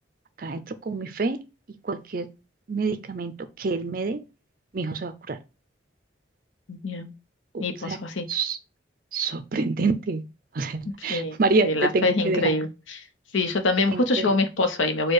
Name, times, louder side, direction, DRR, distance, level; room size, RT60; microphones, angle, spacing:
voice 1, 0.4-1.4 1.8-2.3 2.7-4.2 4.7-5.4 7.5-8.0 8.3-8.6 9.1-10.2 10.5-12.6 13.9-14.4, right 3 dB, 45° right, 0.5 m, -27 dB
voice 2, 6.7-7.1 7.6-8.2 11.1-11.4 11.6-12.7 13.3-15.1, left 2 dB, 85° left, 0.8 m, -24 dB
4.4 x 2.2 x 4.7 m
head